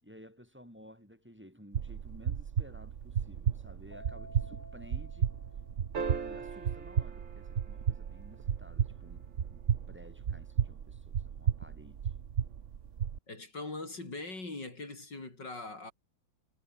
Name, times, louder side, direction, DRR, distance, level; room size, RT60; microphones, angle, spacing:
voice 1, 0.0-5.3 5.9-9.2 9.5-9.6 9.9-12.1, equal, 5° right, 6.1 m, -54 dB
sound 1, 1.7-13.2, right 8 dB, 45° right, 1.2 m, -34 dB
Keyboard (musical), 3.9-6.4, left 1 dB, 20° left, 8.1 m, -53 dB
sound 2, 5.9-8.5 10.7-10.8, right 5 dB, 90° right, 3.7 m, -41 dB
voice 2, 13.3-15.9, left 2 dB, 60° left, 6.5 m, -41 dB
omnidirectional pair, 2.1 m